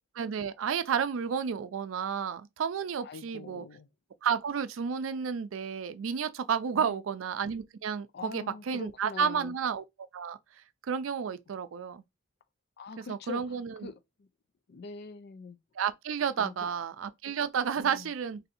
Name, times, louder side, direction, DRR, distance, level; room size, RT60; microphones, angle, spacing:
voice 1, 0.2-3.6 4.2-9.8 10.1-10.4 10.8-12.0 13.0-13.9 15.8-18.4, right 7 dB, 80° right, 0.4 m, -31 dB
voice 2, 3.0-3.9 6.7-7.0 8.1-9.5 12.8-13.6 13.8-14.3 14.7-15.6 16.4-16.7 17.8-18.1, left 4 dB, 55° left, 0.4 m, -43 dB
2.7 x 2.6 x 4.1 m
head